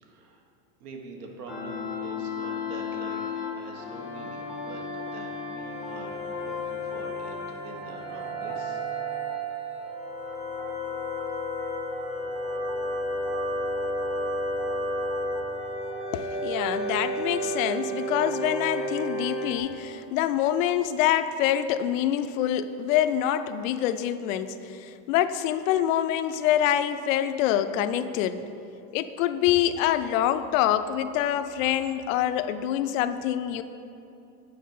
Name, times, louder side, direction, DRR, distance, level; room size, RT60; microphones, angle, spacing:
voice 1, 0.0-0.4 0.8-7.4 7.6-8.8, right 3 dB, 75° right, 1 dB, 1.5 m, -44 dB
sound 1, 1.5-19.6, equal, ahead, 0.6 m, -32 dB
Wind instrument woodwind instrument, 3.7-7.8, left 4 dB, 90° left, 0.9 m, -41 dB
voice 2, 16.1-28.4 28.9-33.6, left 11 dB, 60° left, 11 dB, 0.5 m, -26 dB
8.6 x 4.6 x 5.4 m, 2.7 s
supercardioid pair, 150°, 47 cm